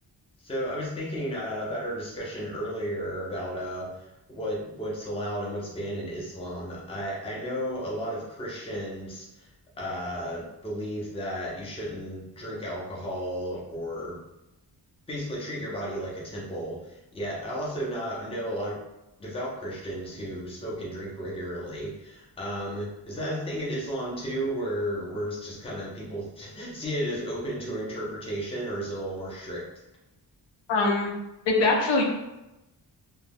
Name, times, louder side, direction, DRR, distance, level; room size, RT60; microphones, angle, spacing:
voice 1, 0.4-9.5 9.8-14.2 15.1-18.8 19.2-29.7, equal, 15° left, -4 dB, 0.5 m, -33 dB
voice 2, 30.7-31.1 31.5-32.0, left 3 dB, 80° left, 0 dB, 0.7 m, -22 dB
2.3 x 2.2 x 3.3 m, 0.94 s
wide cardioid pair, 175°, 42 cm